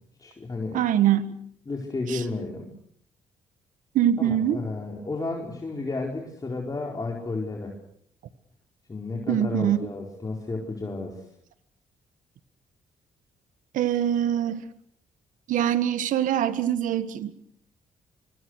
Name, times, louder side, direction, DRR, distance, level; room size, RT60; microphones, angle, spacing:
voice 1, 0.2-0.8 1.7-2.7 4.2-7.7 8.9-11.2, left 3 dB, 30° left, 0 dB, 4.6 m, -32 dB
voice 2, 0.7-1.3 2.1-2.2 4.0-4.6 9.3-9.8 13.7-14.6 15.5-17.3, right 10 dB, 80° right, 13 dB, 1.6 m, -23 dB
25.0 x 24.5 x 6.5 m, 0.67 s
cardioid pair, 85°, 13 cm